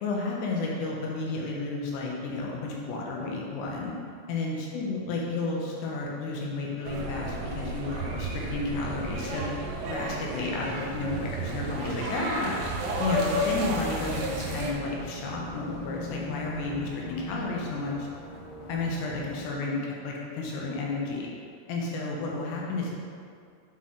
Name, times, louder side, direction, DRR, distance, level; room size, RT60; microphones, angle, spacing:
voice 1, 0.0-3.9 4.3-9.6 9.9-12.6 13.0-18.1 18.7-21.3 21.7-23.0, left 3 dB, 80° left, -2 dB, 2.8 m, -32 dB
sound 1, 6.8-14.7, right 1 dB, 80° right, 2.5 m, -32 dB
sound 2, 12.6-19.5, equal, 65° left, 2.0 m, -40 dB
7.3 x 4.3 x 3.7 m, 2.3 s
omnidirectional pair, 5.0 m